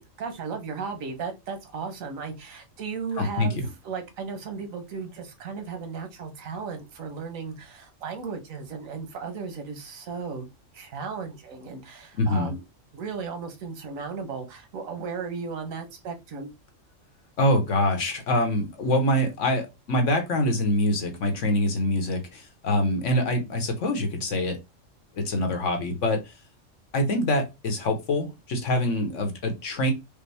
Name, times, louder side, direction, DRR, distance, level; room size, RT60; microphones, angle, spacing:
voice 1, 0.0-10.5 10.7-12.6 12.9-16.5, right 5 dB, 90° right, 6 dB, 1.4 m, -35 dB
voice 2, 3.2-3.7 12.2-12.5 17.4-24.6 25.1-26.2 26.9-29.9, left 1 dB, 70° left, 5 dB, 1.4 m, -25 dB
5.2 x 2.2 x 3.4 m, 0.23 s
omnidirectional pair, 1.4 m